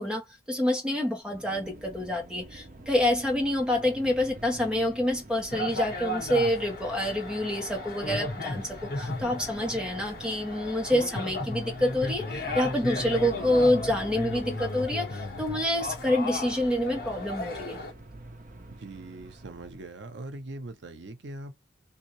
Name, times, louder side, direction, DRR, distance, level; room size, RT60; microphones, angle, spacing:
voice 1, 0.0-17.8, left 1 dB, 5° right, 1.3 m, -27 dB
sound 1, 1.2-20.0, right 2 dB, 45° right, 0.8 m, -46 dB
sound 2, 5.5-17.9, left 2 dB, 55° left, 1.4 m, -35 dB
voice 2, 18.8-21.6, right 2 dB, 85° right, 0.7 m, -41 dB
3.5 x 2.8 x 3.1 m
head